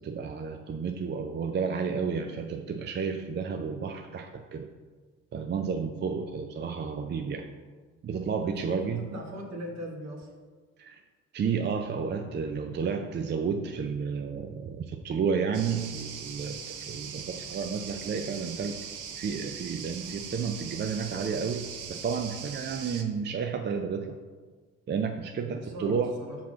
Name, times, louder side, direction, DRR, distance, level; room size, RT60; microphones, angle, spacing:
voice 1, 0.0-4.7 5.3-7.5 8.0-9.1 10.8-11.0 11.3-18.8 19.1-24.2 24.9-26.2, right 6 dB, 35° right, 6 dB, 0.4 m, -31 dB
voice 2, 8.4-8.8 9.1-10.3 25.4-26.4, equal, 60° right, 1 dB, 1.4 m, -40 dB
sound 1, 15.5-23.0, right 7 dB, 85° right, 0.7 m, -40 dB
5.8 x 5.7 x 3.7 m, 1.4 s
cardioid pair, 90°, 30 cm